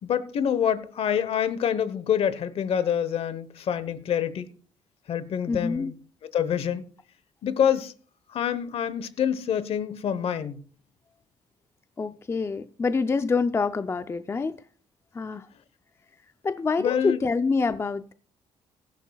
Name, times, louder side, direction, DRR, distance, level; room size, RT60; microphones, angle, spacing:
voice 1, 0.0-4.5 5.1-5.9 6.2-6.8 7.4-7.9 8.3-10.6 16.8-17.2, left 8 dB, 60° left, 1.0 m, -26 dB
voice 2, 5.5-5.9 12.0-14.6 15.1-15.5 16.4-18.1, left 4 dB, 25° left, 0.5 m, -26 dB
16.5 x 14.0 x 2.3 m
cardioid pair, 110°, 11 cm